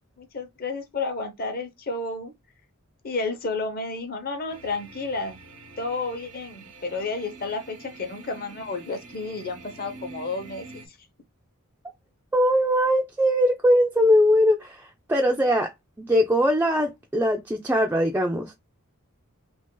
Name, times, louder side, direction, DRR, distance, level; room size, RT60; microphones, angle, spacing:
voice 1, 0.2-2.3 3.0-5.4 5.8-10.6, left 3 dB, 40° left, 0.7 m, -31 dB
sound 1, 4.5-10.9, right 3 dB, 85° right, 0.9 m, -46 dB
voice 2, 12.3-15.7 16.0-18.5, equal, 10° right, 0.3 m, -21 dB
2.9 x 2.5 x 3.7 m
head